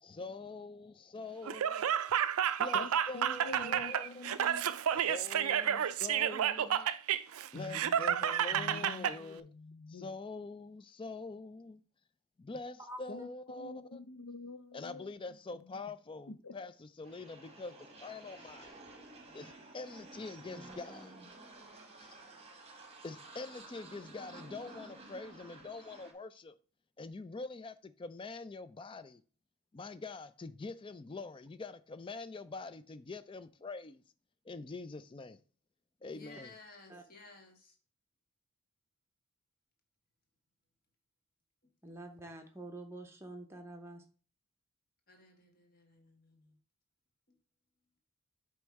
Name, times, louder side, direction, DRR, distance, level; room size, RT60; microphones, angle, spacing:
voice 1, 0.0-2.2 2.6-4.3 4.9-6.9 7.5-9.5 9.9-11.8 12.4-14.0 14.7-18.8 19.3-21.1 22.0-22.1 23.0-26.5 27.0-29.2 29.7-34.0 34.5-35.4 36.0-36.5, left 3 dB, 20° left, 0.3 m, -45 dB
Laughter, 1.5-9.2, right 9 dB, 70° right, 0.4 m, -31 dB
voice 2, 2.7-4.8 7.5-10.1 13.1-15.1 16.3-16.5, left 3 dB, 65° left, 0.6 m, -47 dB
sound 1, 17.0-26.1, right 2 dB, 25° right, 1.2 m, -53 dB
voice 3, 20.5-21.2 36.9-37.0 41.8-44.0, right 1 dB, 10° right, 0.8 m, -47 dB
voice 4, 36.0-37.7 45.1-46.6, left 3 dB, 40° left, 1.5 m, -56 dB
7.8 x 3.1 x 4.7 m
head